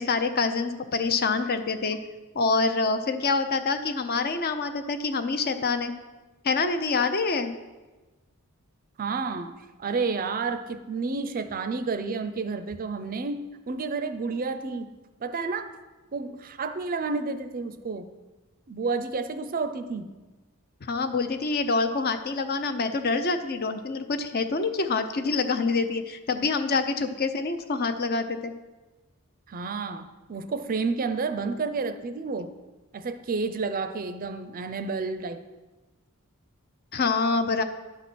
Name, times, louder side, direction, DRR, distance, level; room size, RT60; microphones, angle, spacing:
voice 1, 0.0-2.0 2.3-5.9 6.4-7.5 20.8-28.5 36.9-37.6, left 4 dB, 45° left, 9 dB, 0.6 m, -26 dB
voice 2, 9.0-9.5 9.8-14.9 15.2-15.7 16.1-18.1 18.7-20.1 29.5-32.5 32.9-35.4, right 4 dB, 40° right, 10 dB, 0.5 m, -30 dB
10.5 x 4.2 x 6.1 m, 1.2 s
head